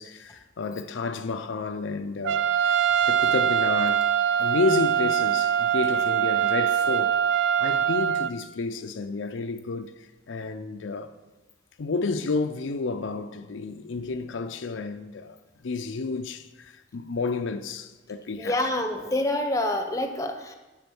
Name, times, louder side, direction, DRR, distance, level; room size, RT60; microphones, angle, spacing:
voice 1, 0.0-2.8 3.1-4.1 4.4-7.2 7.6-9.9 10.3-11.1 11.8-15.4 15.6-18.6, left 4 dB, 90° left, 0.5 m, -30 dB
Trumpet, 2.3-8.3, right 9 dB, 75° right, 0.4 m, -23 dB
voice 2, 18.4-20.6, left 1 dB, 15° left, 0.7 m, -27 dB
10.5 x 4.2 x 7.0 m
head